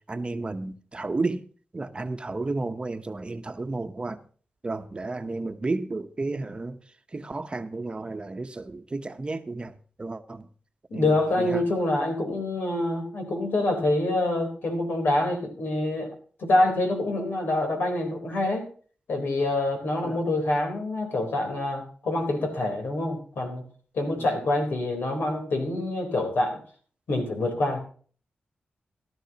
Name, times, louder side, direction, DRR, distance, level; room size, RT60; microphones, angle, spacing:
voice 1, 0.1-1.4 1.7-4.2 4.6-6.8 7.1-10.5 10.9-11.6 20.0-20.2 24.2-24.3, right 3 dB, 30° right, 0.9 m, -32 dB
voice 2, 10.9-16.1 16.4-18.7 19.1-23.6 23.9-26.6 27.1-27.8, left 2 dB, 85° left, 3.8 m, -26 dB
16.5 x 12.5 x 2.9 m
wide cardioid pair, 105°, 3 cm